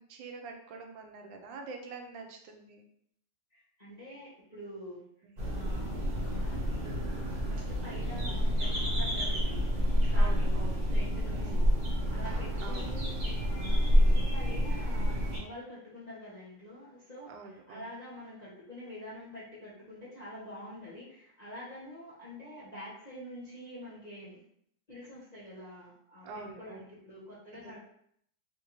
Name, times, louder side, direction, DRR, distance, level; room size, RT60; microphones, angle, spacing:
voice 1, 0.1-2.8 5.2-5.4 10.1-10.8 11.3-11.7 12.6-12.9 17.3-17.9 26.2-26.8 27.5-27.7, right 4 dB, 85° right, 3 dB, 1.3 m, -45 dB
voice 2, 3.8-5.0 5.5-6.0 6.4-7.0 7.5-9.7 10.1-11.6 12.1-24.4 24.9-26.3 26.6-27.8, equal, 30° left, -10 dB, 0.8 m, -46 dB
sound 1, 5.4-15.4, equal, 50° right, 0.5 m, -28 dB
3.9 x 2.6 x 3.0 m, 0.69 s
omnidirectional pair, 2.0 m